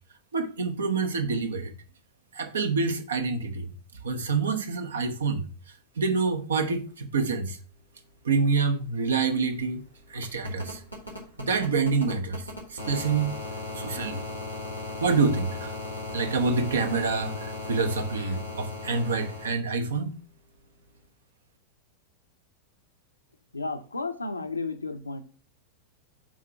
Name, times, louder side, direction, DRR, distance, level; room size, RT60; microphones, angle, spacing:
voice 1, 0.3-1.7 2.3-3.7 4.0-5.5 6.0-7.6 8.2-9.8 10.1-10.8 11.4-12.4 12.7-13.4 13.7-14.3 15.0-15.7 16.1-20.2, right 4 dB, 70° right, 0.9 m, -27 dB
sound 1, 8.7-19.5 21.0-21.1, left 2 dB, 90° right, 1.8 m, -38 dB
voice 2, 23.5-25.2, left 3 dB, 80° left, 0.7 m, -33 dB
6.2 x 4.2 x 5.6 m
figure-of-eight pair, 90°, 0 cm